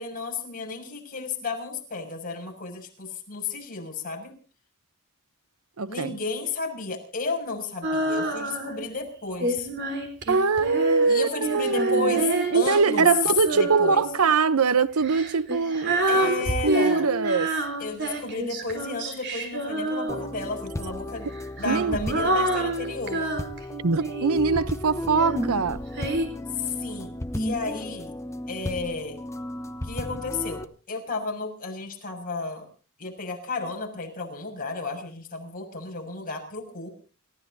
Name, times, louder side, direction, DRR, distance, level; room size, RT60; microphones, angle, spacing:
voice 1, 0.0-4.3 5.8-9.7 11.1-12.2 12.5-13.1 13.6-14.0 16.1-17.1 17.8-21.3 21.6-23.2 26.5-28.1 28.5-29.2 29.8-32.6 33.0-36.9, left 4 dB, 40° left, 6.6 m, -33 dB
voice 2, 5.8-6.2 10.3-17.6 21.6-22.0 23.8-25.8, right 4 dB, 80° right, 0.8 m, -23 dB
Female singing, 7.8-8.9 9.4-14.2 15.0-20.6 21.3-24.5 25.1-26.3, right 1 dB, 55° right, 4.0 m, -28 dB
sound 1, 20.1-30.6, left 1 dB, 15° left, 0.7 m, -34 dB
29.0 x 16.0 x 2.8 m
head